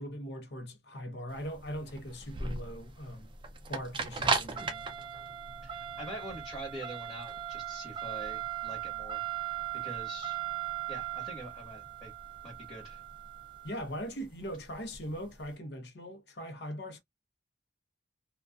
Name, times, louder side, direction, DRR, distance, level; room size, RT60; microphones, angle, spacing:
voice 1, 0.0-3.3 3.7-4.9 13.6-17.0, equal, 65° left, 0.7 m, -40 dB
sound 1, 1.3-15.4, right 7 dB, 25° right, 0.4 m, -37 dB
voice 2, 5.6-10.4 10.9-12.1 12.4-13.0, right 1 dB, 10° left, 1.3 m, -45 dB
2.4 x 2.3 x 2.2 m
head